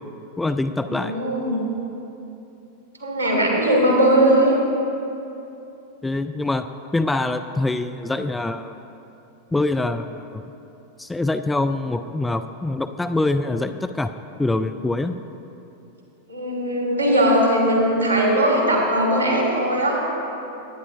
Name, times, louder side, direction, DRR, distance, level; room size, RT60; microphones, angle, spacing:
voice 1, 0.4-1.1 6.0-6.7 6.9-8.8 9.5-10.4 11.0-14.1 14.4-15.2, left 2 dB, 10° left, 9 dB, 0.3 m, -24 dB
voice 2, 0.9-1.6 3.0-4.5 16.3-20.0, right 1 dB, 90° left, -3 dB, 2.9 m, -19 dB
20.5 x 9.8 x 2.8 m, 2.9 s
figure-of-eight pair, 90°, 0 cm